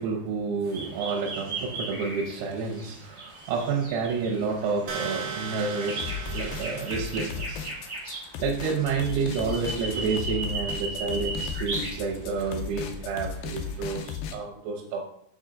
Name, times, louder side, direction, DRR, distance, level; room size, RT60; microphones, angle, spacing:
voice 1, 0.0-7.7 8.4-15.0, right 5 dB, 90° right, -1 dB, 2.9 m, -30 dB
sound 1, 0.6-14.0, right 2 dB, 45° right, 1.2 m, -37 dB
sound 2, 4.9-7.8, right 5 dB, 70° right, 2.5 m, -37 dB
sound 3, 6.0-14.4, left 7 dB, 80° left, 2.2 m, -36 dB
6.4 x 4.5 x 3.7 m, 0.72 s
omnidirectional pair, 4.5 m